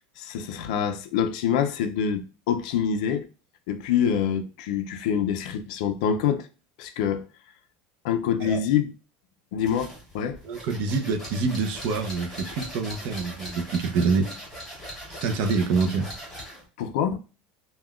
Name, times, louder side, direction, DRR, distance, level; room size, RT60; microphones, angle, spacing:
voice 1, 0.2-3.3 3.7-6.5 6.8-7.2 8.0-8.9 9.5-10.4 16.8-17.2, left 8 dB, 70° left, 0.4 m, -26 dB
sound 1, 9.6-16.6, equal, 5° left, 1.4 m, -40 dB
voice 2, 10.4-14.3 15.2-16.1, right 4 dB, 45° right, 0.5 m, -26 dB
3.6 x 2.2 x 2.3 m
supercardioid pair, 165°, 4 cm